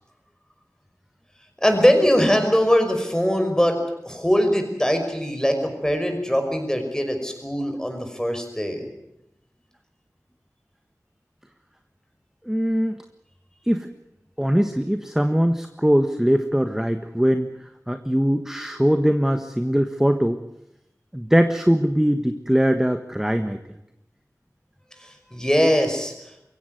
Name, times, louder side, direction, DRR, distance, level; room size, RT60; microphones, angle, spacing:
voice 1, 1.6-3.8 4.1-8.9 25.0-26.1, equal, 10° left, 5 dB, 5.5 m, -21 dB
voice 2, 12.4-13.0 13.7-13.9 14.4-17.5 17.9-20.4 21.1-23.6, equal, 5° right, 8 dB, 1.4 m, -21 dB
22.5 x 16.5 x 9.4 m, 0.86 s
wide cardioid pair, 45°, 7 cm